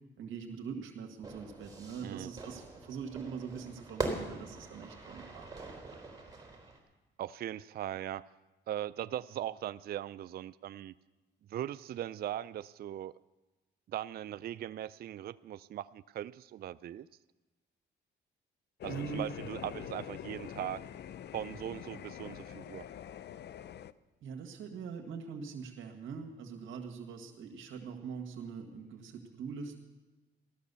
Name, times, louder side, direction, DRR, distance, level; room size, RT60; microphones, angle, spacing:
voice 1, 0.2-5.5 18.9-19.3 24.2-29.8, right 6 dB, 75° right, 2 dB, 1.9 m, -42 dB
Fire / Fireworks, 1.2-6.8, right 2 dB, 20° right, 3.6 m, -42 dB
voice 2, 7.2-8.2 8.7-10.9 11.5-13.2 13.9-17.1 18.8-20.8 21.3-22.9, right 11 dB, 50° right, 15 dB, 0.4 m, -39 dB
sound 1, 18.8-23.9, left 10 dB, 55° left, 0.6 m, -45 dB
16.0 x 13.0 x 6.9 m, 1.2 s
cardioid pair, 90°, 20 cm